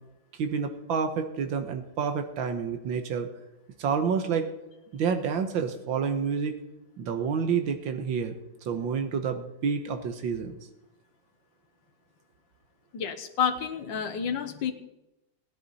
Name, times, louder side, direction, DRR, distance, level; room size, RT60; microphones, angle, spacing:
voice 1, 0.4-3.3 3.8-4.5 4.9-6.5 7.0-8.3 8.7-10.5, right 6 dB, 90° right, 7 dB, 1.8 m, -29 dB
voice 2, 12.9-14.7, left 7 dB, 75° left, 7 dB, 1.8 m, -29 dB
20.0 x 10.5 x 4.1 m, 0.93 s
omnidirectional pair, 2.1 m